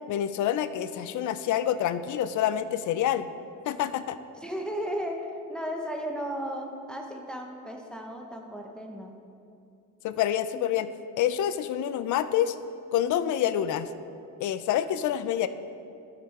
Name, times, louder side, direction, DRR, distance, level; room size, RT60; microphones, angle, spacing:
voice 1, 0.1-3.3 3.7-4.2 10.0-10.9 11.2-12.6 12.9-13.9 14.4-15.5, left 10 dB, 75° left, 12 dB, 0.5 m, -27 dB
voice 2, 4.4-9.2 10.5-10.6, equal, 5° left, 1 dB, 0.9 m, -35 dB
12.0 x 5.9 x 4.2 m, 2.6 s
cardioid pair, 90°, 30 cm